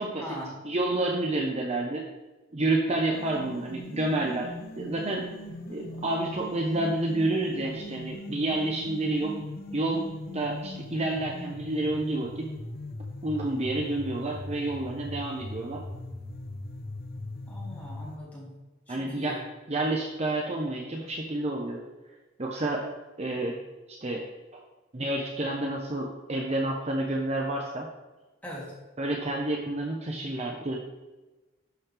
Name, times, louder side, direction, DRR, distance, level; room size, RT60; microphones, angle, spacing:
voice 1, 0.1-0.6 17.5-18.5 18.9-19.4 28.4-28.7, equal, 10° left, -7 dB, 3.1 m, -40 dB
voice 2, 0.6-2.1 2.5-5.3 5.7-9.4 9.7-10.0 10.3-12.5 13.0-15.8 18.9-19.4 19.7-21.8 22.4-22.9 23.2-23.6 23.9-24.2 24.5-24.6 24.9-27.9 29.0-30.8, right 2 dB, 30° right, 0 dB, 0.8 m, -29 dB
sound 1, 3.1-18.2, left 1 dB, 50° left, 0.9 m, -40 dB
11.5 x 6.2 x 3.5 m, 1.1 s
head